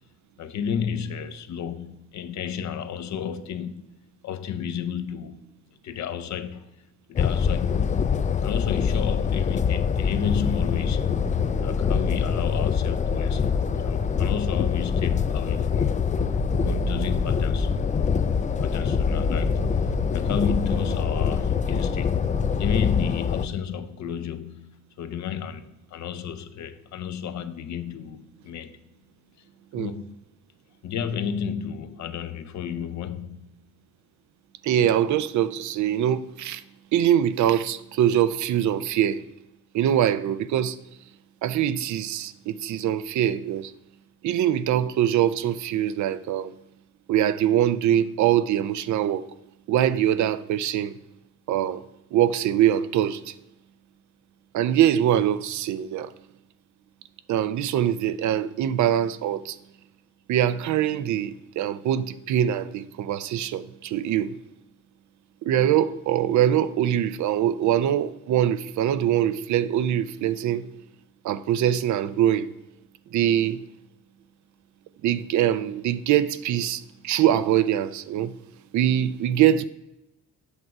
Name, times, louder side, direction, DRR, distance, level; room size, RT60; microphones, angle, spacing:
voice 1, 0.4-3.9 4.2-5.5 5.8-6.7 7.1-8.1 8.4-11.2 11.6-13.4 13.8-16.0 16.6-17.7 18.6-19.7 20.1-22.3 22.6-28.8 29.8-30.2 30.8-33.5, left 7 dB, 65° left, 0.8 m, -32 dB
sound 1, 7.2-23.5, left 7 dB, 25° left, 0.3 m, -24 dB
sound 2, 10.1-22.7, right 3 dB, 25° right, 1.0 m, -35 dB
voice 2, 34.6-36.6 36.9-39.2 39.7-40.8 41.4-43.7 44.2-46.5 47.1-49.3 49.7-51.0 51.5-51.8 52.1-53.3 54.5-56.1 57.3-59.6 60.3-64.3 65.4-70.7 71.2-72.5 73.1-73.6 75.0-78.3 78.7-79.6, right 11 dB, 75° right, 0.6 m, -23 dB
8.2 x 6.1 x 4.6 m
cardioid pair, 90°, 30 cm